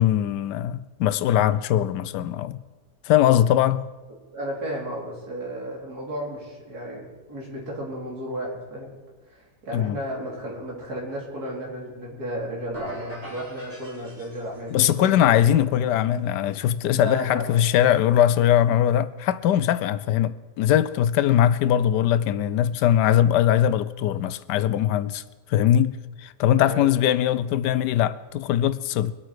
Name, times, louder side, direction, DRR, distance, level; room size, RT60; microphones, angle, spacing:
voice 1, 0.0-2.6 3.0-3.9 9.7-10.0 14.7-25.2 25.5-29.1, left 11 dB, 80° left, 1.2 m, -21 dB
voice 2, 4.3-8.9 9.3-15.7 16.9-17.4 26.6-26.8, equal, 60° right, 3.7 m, -34 dB
sound 1, 12.7-14.8, right 2 dB, 20° right, 4.5 m, -40 dB
23.0 x 8.7 x 4.8 m
omnidirectional pair, 1.8 m